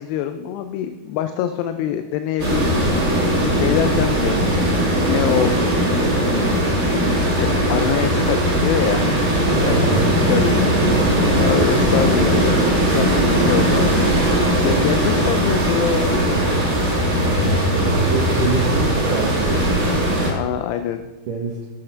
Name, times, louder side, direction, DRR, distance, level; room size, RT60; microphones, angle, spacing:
voice 1, 0.0-5.5 6.1-6.6 7.4-12.6 12.9-13.9 14.2-16.8 17.1-17.7 18.0-18.1 20.3-21.1, left 10 dB, 85° left, 8 dB, 2.6 m, -25 dB
sound 1, 2.4-20.3, right 1 dB, 30° right, 1.8 m, -19 dB
voice 2, 9.5-10.3 14.7-14.8 18.0-20.1 21.3-21.7, right 4 dB, 75° right, -2 dB, 1.9 m, -26 dB
7.7 x 7.6 x 5.7 m, 1.2 s
omnidirectional pair, 4.9 m